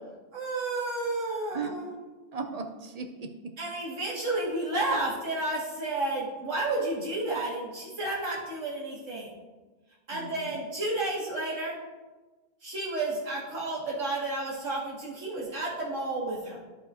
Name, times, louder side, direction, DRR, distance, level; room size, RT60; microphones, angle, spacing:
voice 1, 0.3-2.0 3.6-9.3 10.1-11.8 12.6-16.6, right 2 dB, 85° right, -6 dB, 2.6 m, -31 dB
voice 2, 2.3-3.6 10.1-10.6, right 4 dB, 45° right, 6 dB, 0.5 m, -37 dB
13.0 x 5.4 x 2.8 m, 1.3 s
omnidirectional pair, 1.2 m